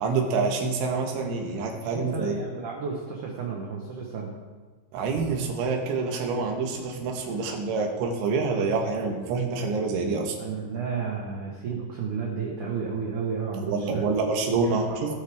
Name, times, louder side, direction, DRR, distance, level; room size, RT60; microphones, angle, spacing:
voice 1, 0.0-2.4 4.9-10.4 13.6-14.9, right 4 dB, 90° right, 2 dB, 3.9 m, -27 dB
voice 2, 1.7-4.3 10.4-14.0 14.7-15.2, right 5 dB, 70° right, -1 dB, 1.9 m, -32 dB
19.5 x 8.1 x 3.5 m, 1.4 s
omnidirectional pair, 5.3 m